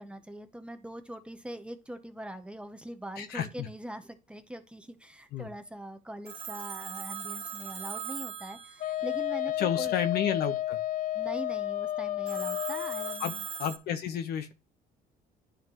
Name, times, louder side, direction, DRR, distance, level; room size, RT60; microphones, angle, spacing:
voice 1, 0.0-9.9 11.1-13.4, right 1 dB, 5° right, 0.8 m, -42 dB
voice 2, 3.2-3.7 5.3-5.5 9.6-10.8 13.2-13.3 13.6-14.5, left 8 dB, 70° left, 1.2 m, -31 dB
Telephone, 6.3-9.3 12.3-13.8, right 7 dB, 40° right, 1.5 m, -40 dB
Wind instrument woodwind instrument, 8.8-13.2, left 13 dB, 55° left, 0.4 m, -32 dB
10.0 x 5.0 x 3.1 m
cardioid pair, 110°, 17 cm